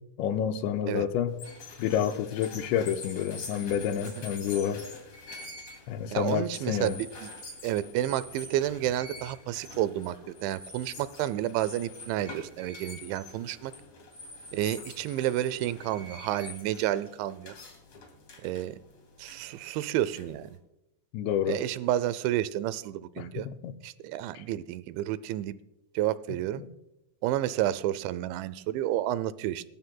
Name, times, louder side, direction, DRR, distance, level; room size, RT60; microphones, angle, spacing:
voice 1, 0.2-1.3 1.8-4.9 5.9-6.9 21.1-21.6 23.2-23.3 23.6-23.7, left 9 dB, 80° left, 2.9 m, -29 dB
sound 1, 1.3-20.6, left 3 dB, 40° left, 3.2 m, -46 dB
voice 2, 6.1-7.3 7.6-13.7 14.5-17.5 18.4-18.8 19.2-20.5 21.5-23.5 23.8-25.5 25.9-26.6 27.2-29.6, right 13 dB, 85° right, 2.9 m, -30 dB
26.5 x 13.0 x 2.2 m
omnidirectional pair, 5.3 m